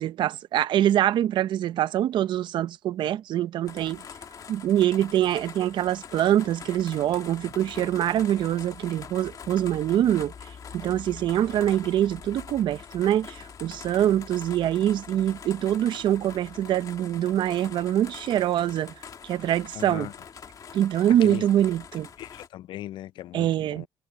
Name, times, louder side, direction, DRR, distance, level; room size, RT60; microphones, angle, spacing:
voice 1, 0.0-4.0 4.5-10.3 10.7-18.9 19.2-20.1 20.7-22.1 23.3-23.9, right 11 dB, 70° right, 0.6 m, -24 dB
sound 1, 3.6-22.5, left 7 dB, 50° left, 2.3 m, -44 dB
voice 2, 19.8-20.1 21.2-21.4 22.2-23.9, left 13 dB, 75° left, 0.4 m, -38 dB
cardioid pair, 110°, 8 cm